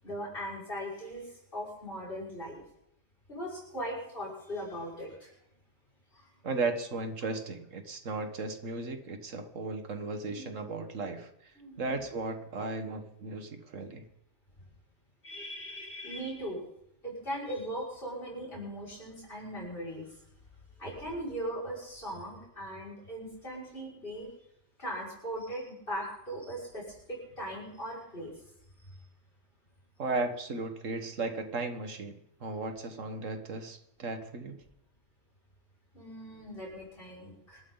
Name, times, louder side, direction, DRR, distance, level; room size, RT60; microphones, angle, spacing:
voice 1, 0.0-2.6 3.3-5.3 6.1-6.3 10.3-10.5 11.6-12.0 15.2-16.6 17.0-20.2 20.8-24.3 24.8-28.4 28.8-29.0 35.9-37.6, equal, 45° left, -4 dB, 6.0 m, -39 dB
voice 2, 6.4-14.0 30.0-34.6, right 3 dB, 85° right, 7 dB, 1.9 m, -36 dB
26.0 x 13.0 x 4.0 m, 0.77 s
omnidirectional pair, 1.3 m